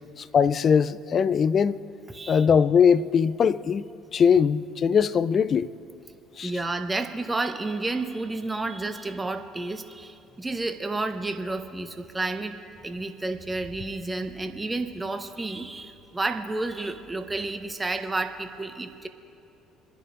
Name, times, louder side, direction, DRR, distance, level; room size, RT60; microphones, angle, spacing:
voice 1, 0.2-1.8 2.3-5.7 6.4-6.5, left 7 dB, 40° left, 0.4 m, -21 dB
voice 2, 2.1-2.4 6.4-19.1, right 2 dB, 15° right, 1.1 m, -31 dB
28.5 x 10.5 x 2.6 m
figure-of-eight pair, 55°, 0 cm